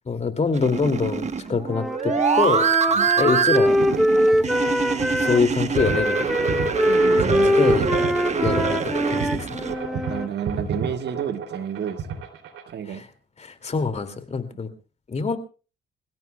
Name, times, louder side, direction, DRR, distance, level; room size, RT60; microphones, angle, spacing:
voice 1, 0.1-2.6 3.2-3.8 4.2-4.4 5.2-6.1 7.2-7.8 8.4-9.6 12.9-13.0 13.4-14.7 15.1-15.4, left 4 dB, 35° left, 8 dB, 2.4 m, -24 dB
sound 1, 0.5-9.7, right 6 dB, 35° right, 1.2 m, -25 dB
Wind instrument woodwind instrument, 1.6-5.4 5.8-10.3, equal, ahead, 0.8 m, -23 dB
sound 2, 3.8-12.7, right 6 dB, 80° right, 2.9 m, -31 dB
voice 2, 6.9-7.6 9.9-12.2 12.7-13.1, right 8 dB, 60° right, 9 dB, 1.4 m, -31 dB
27.0 x 16.5 x 2.3 m, 0.34 s
cardioid pair, 90°, 20 cm